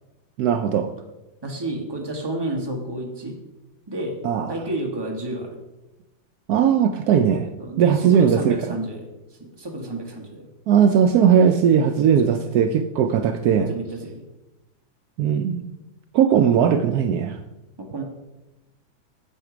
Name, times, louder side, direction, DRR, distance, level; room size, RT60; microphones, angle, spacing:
voice 1, 0.4-0.9 4.2-4.5 6.5-7.5 7.8-8.7 10.7-13.7 15.2-15.7 16.1-17.4, right 8 dB, 85° right, 8 dB, 0.8 m, -18 dB
voice 2, 1.4-3.4 3.9-4.2 4.5-5.6 7.6-9.1 9.4-10.5 12.2-12.5 13.1-14.2 17.8-18.0, right 1 dB, 15° right, 1 dB, 1.2 m, -31 dB
9.2 x 7.7 x 5.0 m, 0.98 s
omnidirectional pair, 2.2 m